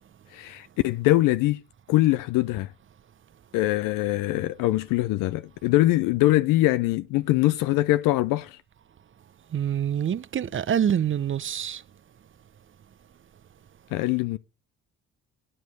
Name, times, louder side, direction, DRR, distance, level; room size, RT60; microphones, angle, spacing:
voice 1, 0.3-1.6 1.9-2.7 3.5-8.6 13.9-14.4, left 17 dB, 70° left, 0.6 m, -23 dB
voice 2, 9.5-11.8, right 9 dB, 35° right, 0.7 m, -26 dB
9.5 x 7.8 x 7.7 m
hypercardioid pair, 50°, 33 cm